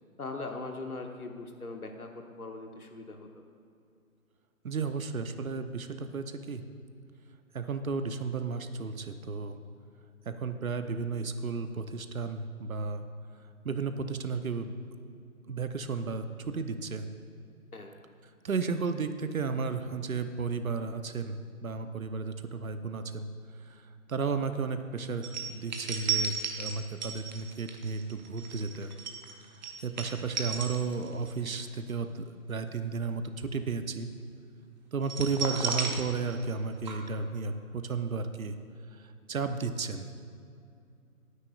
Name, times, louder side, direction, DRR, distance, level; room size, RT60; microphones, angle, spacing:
voice 1, 0.2-3.4 17.7-18.0, left 3 dB, 80° left, 4 dB, 1.2 m, -40 dB
voice 2, 4.6-6.6 7.5-9.6 10.3-13.0 13.6-14.7 15.5-17.1 18.4-23.3 23.7-23.8 24.1-28.9 29.8-34.1 34.9-38.6 38.9-40.1, right 4 dB, 70° right, 9 dB, 0.9 m, -33 dB
sound 1, 25.2-31.3 31.6-31.9 35.0-36.6 36.8-36.9, right 5 dB, 30° right, 1.0 m, -34 dB
20.0 x 9.6 x 2.4 m, 2.5 s
figure-of-eight pair, 140°, 43 cm